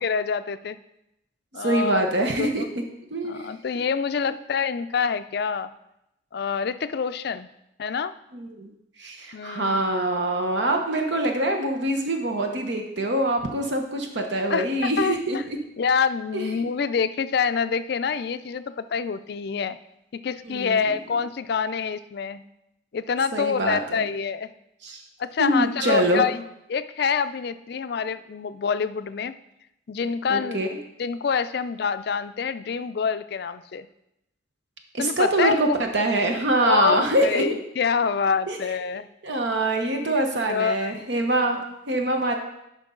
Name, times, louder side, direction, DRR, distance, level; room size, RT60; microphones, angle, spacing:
voice 1, 0.0-0.8 1.5-2.1 2.4-2.7 3.2-5.7 6.3-7.5 7.8-8.1 9.3-9.8 14.5-15.4 15.8-19.8 20.1-22.5 22.9-24.5 25.2-29.3 29.9-30.6 31.0-33.9 35.0-35.6 36.6-39.1 39.9-40.1 40.5-40.9, left 6 dB, 55° left, 12 dB, 0.4 m, -26 dB
voice 2, 1.6-2.6 3.1-3.5 4.2-4.3 8.3-8.7 9.0-15.4 16.3-16.5 20.4-20.9 23.3-24.1 24.8-25.0 25.4-26.2 30.3-30.7 34.9-37.6 38.5-38.7 39.2-42.3, right 1 dB, 65° right, 3 dB, 1.0 m, -24 dB
11.0 x 5.2 x 3.8 m, 0.85 s
head